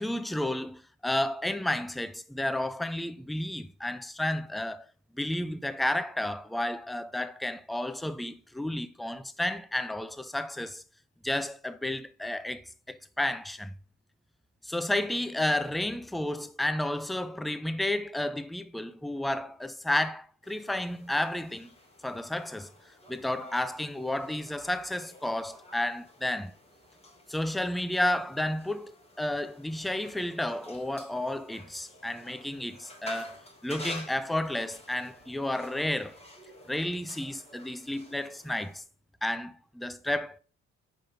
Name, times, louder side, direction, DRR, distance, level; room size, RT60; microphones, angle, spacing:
voice 1, 0.0-4.9 5.2-10.8 11.2-13.7 14.7-21.7 22.0-22.7 23.1-26.5 27.3-36.2 36.7-38.8 39.2-40.4, left 1 dB, ahead, 0.5 m, -32 dB
sound 1, 20.4-38.8, left 1 dB, 20° left, 3.1 m, -50 dB
5.3 x 5.1 x 5.8 m
supercardioid pair, 70°, 30 cm